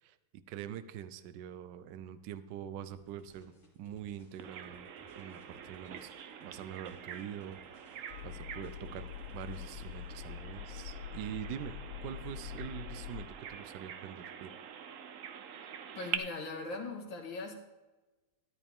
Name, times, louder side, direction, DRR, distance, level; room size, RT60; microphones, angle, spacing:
voice 1, 0.0-4.9 5.2-6.1 6.4-9.1 9.3-14.5, right 9 dB, 70° right, 12 dB, 1.2 m, -44 dB
sound 1, 2.9-10.2, equal, 35° left, 3.0 m, -63 dB
Bird vocalization bird call bird song, 4.4-16.2, right 8 dB, 85° right, 0.7 m, -46 dB
sound 2, 8.1-13.3, left 11 dB, 90° left, 1.5 m, -45 dB
voice 2, 16.0-17.5, left 3 dB, 65° left, 1 dB, 2.5 m, -40 dB
13.5 x 11.0 x 3.5 m, 1.1 s
omnidirectional pair, 2.3 m